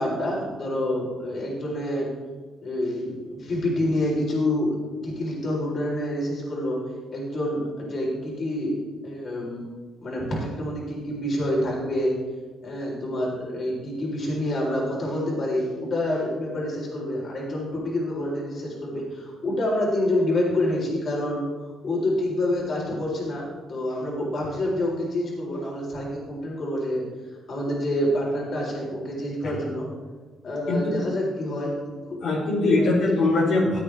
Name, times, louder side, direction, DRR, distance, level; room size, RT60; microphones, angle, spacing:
voice 1, 0.0-2.1 2.6-4.8 5.0-6.8 7.1-8.8 9.0-9.7 10.0-12.1 12.6-21.5 21.8-27.0 27.5-29.9 30.4-32.2 32.8-33.0, left 1 dB, 50° left, -3 dB, 4.0 m, -27 dB
voice 2, 30.7-31.0 32.2-33.8, left 2 dB, 75° left, -6 dB, 3.6 m, -22 dB
15.5 x 8.6 x 3.5 m, 1.3 s
cardioid pair, 90°, 0 cm